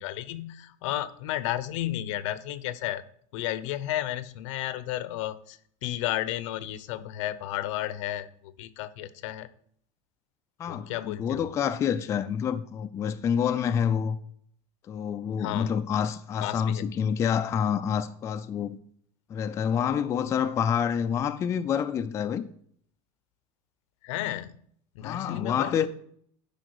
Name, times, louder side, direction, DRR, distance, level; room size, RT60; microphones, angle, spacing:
voice 1, 0.0-3.0 3.3-8.3 8.6-9.5 10.7-11.5 15.4-15.7 16.4-16.9 24.0-24.5 24.9-25.9, left 13 dB, 80° left, 0.8 m, -32 dB
voice 2, 10.6-14.2 14.9-18.8 19.3-22.4 25.0-25.9, left 8 dB, 20° left, 0.4 m, -27 dB
11.5 x 5.4 x 4.8 m
cardioid pair, 170°, 16 cm